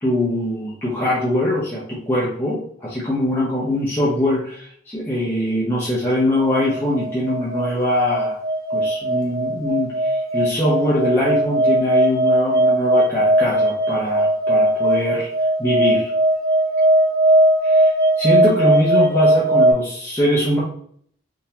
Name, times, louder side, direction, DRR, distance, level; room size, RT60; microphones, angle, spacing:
voice 1, 0.0-8.4 8.7-15.3 15.6-16.1 17.6-17.9 18.2-20.6, equal, 10° left, -7 dB, 0.6 m, -22 dB
sound 1, 6.4-19.7, right 1 dB, 50° right, 0.8 m, -19 dB
3.7 x 2.8 x 2.8 m, 0.62 s
head